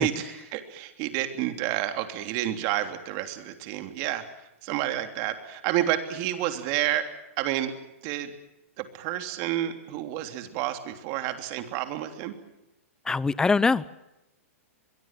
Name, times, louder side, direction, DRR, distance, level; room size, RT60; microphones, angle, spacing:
voice 1, 0.0-4.2 4.6-7.1 7.4-7.7 8.0-8.3 8.8-12.3, right 13 dB, 40° right, 8 dB, 3.2 m, -29 dB
voice 2, 13.1-13.9, left 4 dB, 10° left, 19 dB, 0.8 m, -23 dB
24.0 x 22.5 x 7.5 m, 0.92 s
hypercardioid pair, 140°, 8 cm